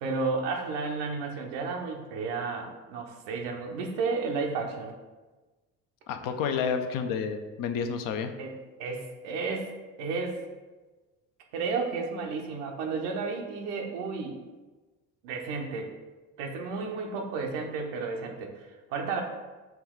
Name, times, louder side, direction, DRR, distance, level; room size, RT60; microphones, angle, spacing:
voice 1, 0.0-4.9 8.4-8.5 8.8-9.7 10.0-10.4 11.5-14.4 15.2-15.9 16.4-19.2, right 4 dB, 80° right, 2 dB, 0.8 m, -32 dB
voice 2, 6.1-8.3, left 6 dB, 60° left, 7 dB, 0.6 m, -30 dB
5.8 x 2.3 x 3.6 m, 1.2 s
hypercardioid pair, 65°, 36 cm